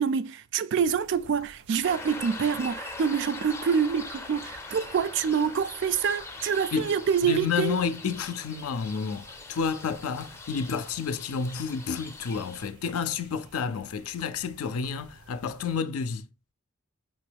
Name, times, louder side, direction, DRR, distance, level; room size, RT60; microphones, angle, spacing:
voice 1, 0.0-7.8, right 7 dB, 55° right, 0.3 m, -26 dB
sound 1, 0.8-15.8, right 2 dB, 90° right, 0.9 m, -54 dB
sound 2, 1.8-12.7, left 3 dB, 10° left, 0.4 m, -42 dB
voice 2, 7.2-16.3, left 6 dB, 85° left, 0.4 m, -30 dB
5.2 x 3.0 x 3.3 m
head